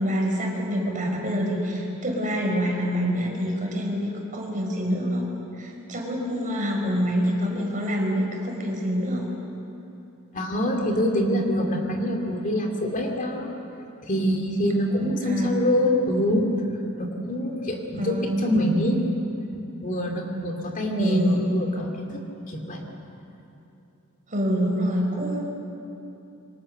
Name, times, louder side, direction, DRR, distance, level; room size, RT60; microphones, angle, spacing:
voice 1, 0.0-5.3 5.6-9.3 15.3-15.6 18.0-18.5 21.0-21.4 24.3-25.5, equal, 40° right, 0 dB, 5.2 m, -26 dB
voice 2, 10.3-13.5 14.0-16.5 17.0-19.0 19.8-22.2 22.5-22.8, equal, 40° left, 2 dB, 2.7 m, -25 dB
27.5 x 24.0 x 6.7 m, 2.9 s
head